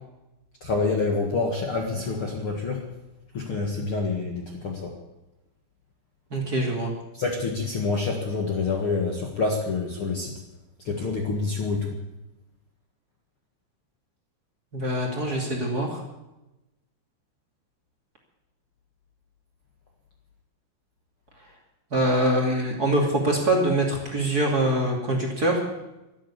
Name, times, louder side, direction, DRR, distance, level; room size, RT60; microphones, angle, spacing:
voice 1, 0.6-2.8 3.3-4.9 7.2-10.3 10.8-11.9, left 3 dB, 55° left, 1 dB, 1.4 m, -27 dB
voice 2, 6.3-6.9 14.7-16.0 21.9-25.6, right 1 dB, 25° right, -1 dB, 2.4 m, -24 dB
12.5 x 12.5 x 8.4 m, 0.98 s
omnidirectional pair, 5.1 m